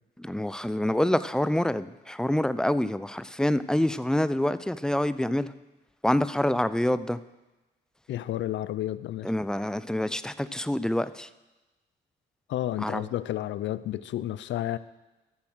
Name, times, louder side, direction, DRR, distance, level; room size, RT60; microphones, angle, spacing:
voice 1, 0.2-5.5 6.0-7.2 9.2-11.3 12.8-13.1, left 1 dB, 5° left, 0.4 m, -26 dB
voice 2, 8.1-9.3 12.5-14.8, left 13 dB, 70° left, 0.5 m, -31 dB
13.0 x 7.1 x 6.2 m
cardioid pair, 90°, 20 cm